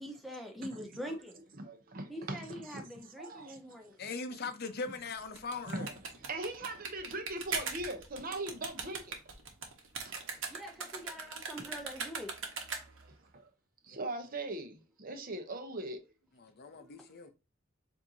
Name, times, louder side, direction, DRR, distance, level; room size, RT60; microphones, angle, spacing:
voice 1, 0.0-1.4 2.1-3.9 10.5-12.3, equal, ahead, 0.4 m, -44 dB
voice 2, 0.7-1.2 1.5-3.6 4.0-4.1 5.7-5.9 6.2-9.2 10.0-10.3 11.2-11.3 13.0-13.5 13.8-16.0 16.6-17.1, right 2 dB, 45° right, 0.8 m, -41 dB
voice 3, 4.0-5.9 16.4-17.3, left 4 dB, 50° left, 0.6 m, -40 dB
sound 1, 5.2-13.1, right 5 dB, 65° right, 1.1 m, -40 dB
7.3 x 2.7 x 2.7 m
head